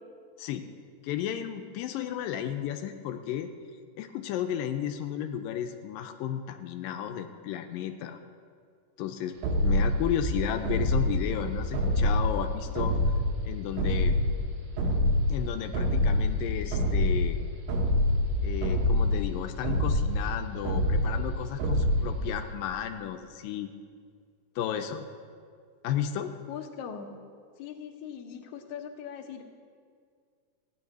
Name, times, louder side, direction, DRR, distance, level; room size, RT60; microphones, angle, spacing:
voice 1, 0.4-0.7 1.0-3.5 4.0-8.2 9.0-9.4 9.6-13.0 13.4-14.2 15.3-17.4 18.4-23.7 24.6-25.1 25.8-26.3, left 10 dB, 85° left, 6 dB, 2.4 m, -33 dB
sound 1, 9.4-22.5, left 1 dB, 85° right, 3.0 m, -27 dB
voice 2, 26.5-27.2 27.6-29.4, left 8 dB, 65° left, 3 dB, 2.2 m, -40 dB
15.5 x 6.6 x 9.4 m, 2.1 s
omnidirectional pair, 3.9 m